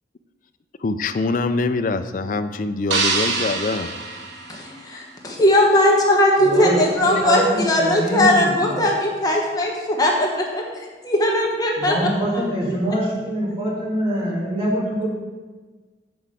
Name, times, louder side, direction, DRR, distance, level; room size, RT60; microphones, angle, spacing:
voice 1, 0.8-3.9, left 3 dB, 45° left, 9 dB, 0.4 m, -24 dB
sound 1, 2.9-5.2, right 4 dB, 80° right, 1.0 m, -25 dB
voice 2, 4.5-11.9 12.3-12.4, left 1 dB, 20° left, -1 dB, 1.1 m, -19 dB
voice 3, 6.4-8.8 11.8-15.1, equal, 30° right, -6 dB, 2.5 m, -24 dB
7.8 x 4.8 x 6.7 m, 1.3 s
head